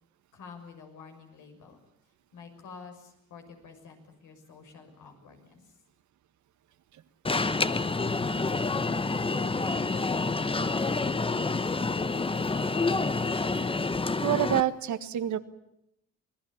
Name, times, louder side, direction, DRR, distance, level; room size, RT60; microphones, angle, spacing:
voice 1, 0.3-1.8 2.3-5.6, left 5 dB, 80° left, 4 dB, 6.4 m, -49 dB
Alarm, 7.2-14.6, left 3 dB, 20° left, 0.9 m, -28 dB
voice 2, 14.2-15.4, right 12 dB, 70° right, 11 dB, 1.6 m, -27 dB
26.0 x 19.0 x 8.7 m, 0.81 s
cardioid pair, 90°, 30 cm